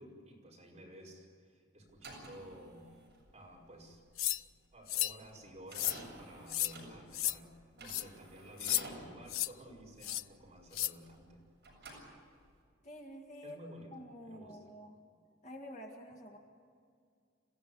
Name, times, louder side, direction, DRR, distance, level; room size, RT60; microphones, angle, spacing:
voice 1, 0.0-2.9 3.3-4.0 4.7-11.4 13.4-14.6, right 1 dB, 30° right, -3 dB, 5.4 m, -53 dB
CD-player start & stop open & close, 1.9-11.3 11.6-12.6, right 2 dB, 55° right, 7.6 m, -52 dB
sound 1, 4.2-4.4 4.9-5.2 5.7-6.0 6.5-6.7 7.1-7.3 7.9-8.0 8.6-8.8 9.3-9.5 10.0-10.2 10.7-10.9, left 14 dB, 85° left, 0.5 m, -33 dB
voice 2, 12.8-13.6 13.9-15.0 15.4-16.4, equal, 35° left, 1 dB, 2.0 m, -49 dB
27.5 x 16.0 x 8.3 m, 2.2 s
head